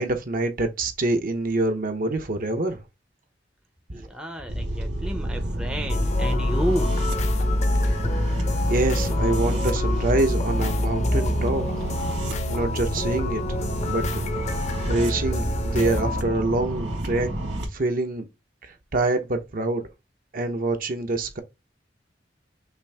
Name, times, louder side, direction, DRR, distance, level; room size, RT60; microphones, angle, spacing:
voice 1, 0.0-2.8 3.9-4.0 8.7-11.7 12.5-13.6 13.9-14.6 14.9-17.3 17.7-18.3 18.6-19.9 20.3-21.4, right 2 dB, 50° right, 0.8 m, -26 dB
voice 2, 3.9-7.0, right 1 dB, 5° right, 0.6 m, -31 dB
sound 1, 4.5-17.6, right 1 dB, 70° right, 1.9 m, -30 dB
sound 2, 5.9-16.2, left 1 dB, 40° left, 0.7 m, -26 dB
5.9 x 2.5 x 3.5 m
head